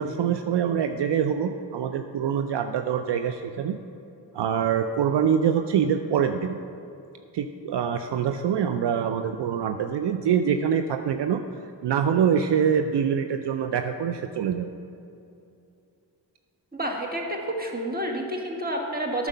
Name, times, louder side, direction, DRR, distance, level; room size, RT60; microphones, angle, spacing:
voice 1, 0.0-3.8 4.3-6.6 7.3-11.4 11.8-14.7, right 8 dB, 70° right, 7 dB, 0.5 m, -25 dB
voice 2, 16.7-19.3, right 1 dB, 20° right, 1 dB, 1.6 m, -29 dB
9.0 x 6.2 x 5.5 m, 2.6 s
cardioid pair, 50°, 44 cm